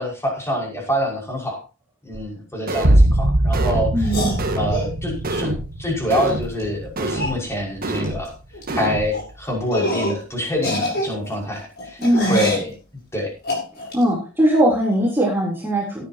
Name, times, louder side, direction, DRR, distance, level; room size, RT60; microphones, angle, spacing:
voice 1, 0.0-1.6 2.0-4.2 4.6-5.5 5.8-8.3 8.7-12.0 12.3-12.7 13.1-13.3, equal, 15° left, 0 dB, 5.6 m, -25 dB
sound 1, 2.1-2.2 2.7-3.1 3.5-3.9 4.4-4.8 5.2-5.7 6.1-6.5 7.0-7.4 7.8-8.2 8.7-9.1, right 2 dB, 45° right, 1.7 m, -27 dB
sound 2, 2.8-8.3 8.7-9.3, right 1 dB, 60° right, 1.4 m, -22 dB
voice 2, 3.9-4.3 12.0-12.4 13.9-16.1, equal, 10° right, -4 dB, 3.4 m, -19 dB
sound 3, 4.0-4.9 6.3-6.4 6.6-6.7 7.1-7.4 8.0-8.3 8.5-8.7 9.1-9.3 9.7-10.2 10.5-12.7 13.4-14.0, equal, 50° left, 7.0 m, -25 dB
17.5 x 11.5 x 2.9 m, 0.31 s
head